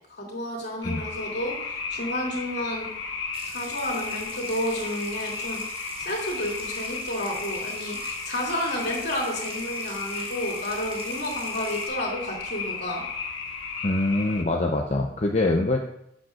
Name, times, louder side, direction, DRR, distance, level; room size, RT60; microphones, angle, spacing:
voice 1, 0.1-2.9 3.4-5.6 6.0-13.0, left 1 dB, 60° left, -2 dB, 2.7 m, -31 dB
sound 1, 0.8-14.4, left 5 dB, 90° left, 1.3 m, -34 dB
Water tap faucet / Sink (filling or washing) / Trickle dribble, 3.3-11.9, right 3 dB, 30° right, 1.9 m, -43 dB
voice 2, 13.8-15.8, left 2 dB, 35° left, 1 dB, 0.7 m, -24 dB
12.0 x 7.7 x 2.5 m, 0.77 s
head